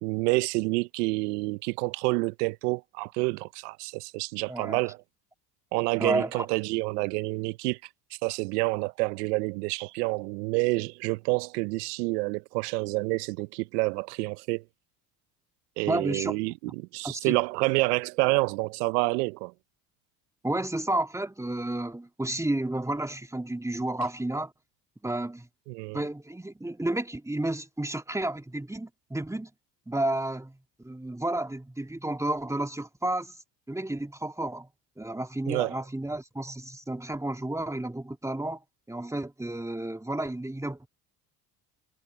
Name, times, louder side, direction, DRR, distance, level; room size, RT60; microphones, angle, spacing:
voice 1, 0.0-5.0 5.7-7.8 8.2-14.6 15.8-19.5 25.7-26.0 35.5-35.7, right 25 dB, 80° right, 0.8 m, -28 dB
voice 2, 4.5-4.8 6.0-6.5 15.9-16.4 17.0-17.4 20.4-24.5 25.0-25.5 25.9-29.5 29.9-33.4 33.7-34.7 35.0-40.9, right 1 dB, 5° right, 2.2 m, -31 dB
hypercardioid pair, 65°, 47 cm